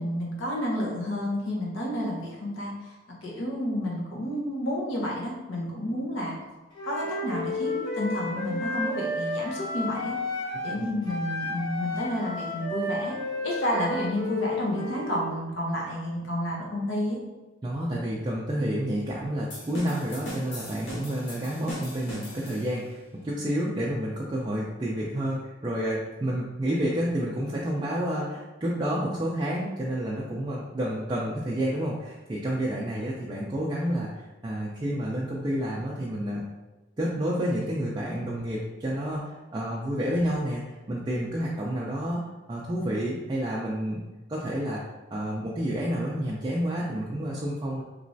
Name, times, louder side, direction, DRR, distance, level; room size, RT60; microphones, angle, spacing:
voice 1, 0.0-2.9 3.2-6.4 6.8-10.2 10.6-13.2 13.4-17.2, left 1 dB, 85° left, -3 dB, 0.9 m, -30 dB
Wind instrument woodwind instrument, 6.7-10.8 11.0-15.2, left 1 dB, 20° left, 1.0 m, -32 dB
voice 2, 17.6-34.1 34.4-36.5 37.0-42.2 42.5-44.0 44.3-44.8 45.1-47.8, equal, 20° right, -5 dB, 0.3 m, -29 dB
sound 1, 19.5-22.9, equal, 60° left, 0.9 m, -40 dB
3.1 x 3.0 x 2.6 m, 1.1 s
head